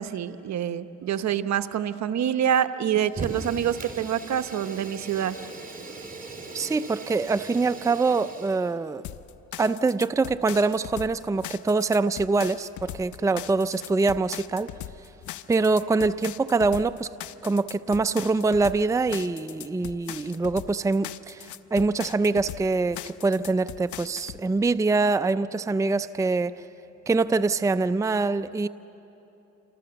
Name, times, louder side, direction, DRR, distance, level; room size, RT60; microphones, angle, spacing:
voice 1, 0.0-5.4, right 9 dB, 65° right, 10 dB, 1.0 m, -26 dB
Fire, 3.1-8.7, right 3 dB, 30° right, 3.6 m, -39 dB
voice 2, 6.5-9.0 9.6-14.7 15.5-17.1 17.4-26.5 27.1-28.7, right 3 dB, 10° right, 12 dB, 0.5 m, -24 dB
sound 1, 9.0-24.4, left 12 dB, 75° left, 0.7 m, -40 dB
28.5 x 26.5 x 7.0 m, 3.0 s
cardioid pair, 90°, 30 cm